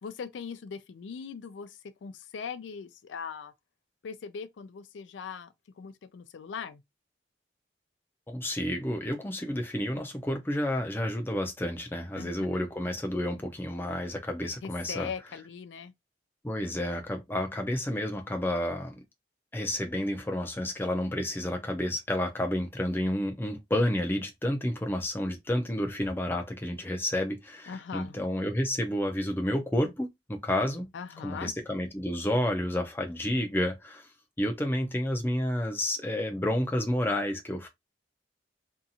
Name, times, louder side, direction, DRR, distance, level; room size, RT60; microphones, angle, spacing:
voice 1, 0.0-3.5 4.0-6.8 12.2-12.3 14.6-15.9 27.7-28.2 30.9-31.5, left 6 dB, 85° left, 0.4 m, -40 dB
voice 2, 8.3-15.1 16.4-18.9 19.5-30.9 31.2-34.1 34.4-37.7, left 1 dB, 10° left, 0.4 m, -30 dB
2.7 x 2.4 x 2.7 m
head